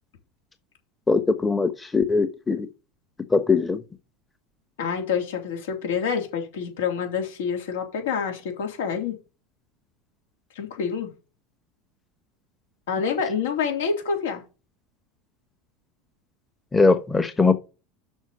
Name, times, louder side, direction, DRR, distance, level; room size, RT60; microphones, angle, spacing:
voice 1, 1.1-2.7 3.3-3.8 16.7-17.5, left 4 dB, 15° left, 1.0 m, -21 dB
voice 2, 4.8-9.2 10.5-11.1 12.9-14.4, left 6 dB, 80° left, 3.4 m, -27 dB
6.4 x 5.8 x 6.8 m
hypercardioid pair, 95°, 0 cm